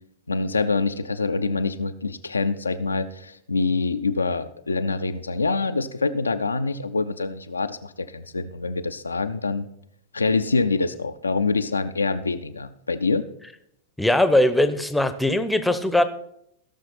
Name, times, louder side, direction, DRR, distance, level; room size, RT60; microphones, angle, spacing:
voice 1, 0.3-9.7 10.1-13.2, left 3 dB, 80° left, 10 dB, 0.6 m, -25 dB
voice 2, 14.0-16.0, left 1 dB, 5° left, 10 dB, 0.9 m, -20 dB
16.5 x 6.5 x 4.2 m, 0.74 s
figure-of-eight pair, 90°, 0 cm